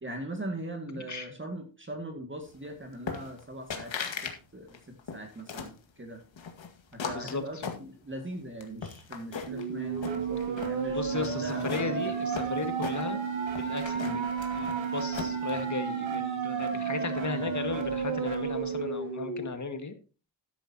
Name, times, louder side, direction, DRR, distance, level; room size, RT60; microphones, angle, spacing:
voice 1, 0.0-4.8 5.1-6.2 6.9-12.2 14.0-14.2, right 1 dB, 25° right, 3 dB, 2.1 m, -40 dB
voice 2, 0.9-1.3 7.2-7.4 11.0-13.2 13.6-14.3 14.6-19.9, left 4 dB, 40° left, 7 dB, 1.9 m, -35 dB
sound 1, 3.1-3.4 3.7-4.4 4.7-5.8 6.4-8.2 8.6-9.6 10.0-10.8 11.2-13.3 13.5-15.5, left 6 dB, 70° left, 2.1 m, -38 dB
sound 2, 9.5-19.5, right 6 dB, 75° right, 2.6 m, -32 dB
13.0 x 10.5 x 2.9 m, 0.35 s
wide cardioid pair, 105°, 46 cm